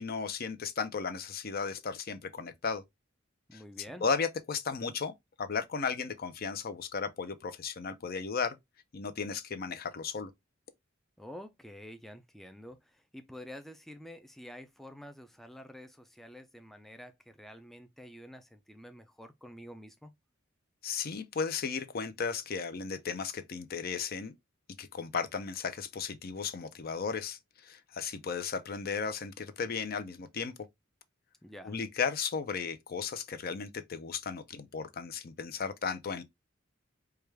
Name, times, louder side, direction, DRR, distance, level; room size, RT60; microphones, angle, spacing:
voice 1, 0.0-2.8 3.5-3.6 4.0-8.6 8.9-10.3 20.8-24.3 24.8-30.5 31.6-36.2, left 5 dB, 50° left, 0.5 m, -35 dB
voice 2, 3.5-4.1 11.2-20.1 31.4-31.8, equal, ahead, 0.3 m, -48 dB
4.7 x 2.3 x 3.3 m
head